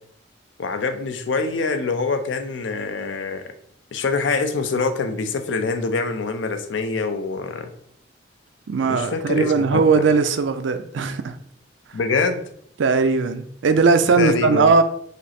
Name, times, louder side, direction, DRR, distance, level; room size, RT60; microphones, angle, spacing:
voice 1, 0.6-3.4 3.9-7.7 8.9-10.1 11.9-12.4 14.2-14.7, left 4 dB, 85° left, 0.5 m, -25 dB
voice 2, 8.7-11.4 12.8-14.8, right 4 dB, 85° right, 0.4 m, -19 dB
5.1 x 2.0 x 4.2 m
head